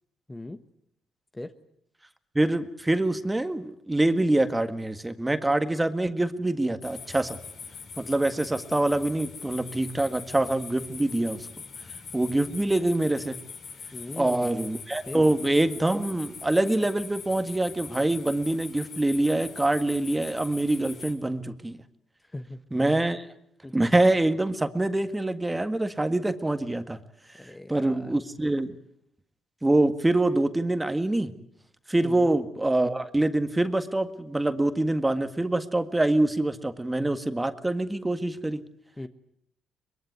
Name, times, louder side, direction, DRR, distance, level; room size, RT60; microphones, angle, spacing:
voice 1, 0.3-0.6 1.3-1.5 13.9-14.6 15.1-15.2 22.3-22.6 23.6-23.7 27.4-28.1 32.0-32.3 39.0-39.1, left 2 dB, 15° left, 8 dB, 1.4 m, -39 dB
voice 2, 2.4-7.4 8.0-11.5 12.1-13.4 14.2-21.8 22.7-23.3 23.7-27.0 27.7-28.8 29.6-31.3 31.9-38.6, right 2 dB, 10° right, 9 dB, 1.8 m, -25 dB
sound 1, 6.8-21.1, left 5 dB, 65° left, 6.6 m, -42 dB
23.5 x 22.0 x 9.5 m, 0.73 s
cardioid pair, 90°, 0 cm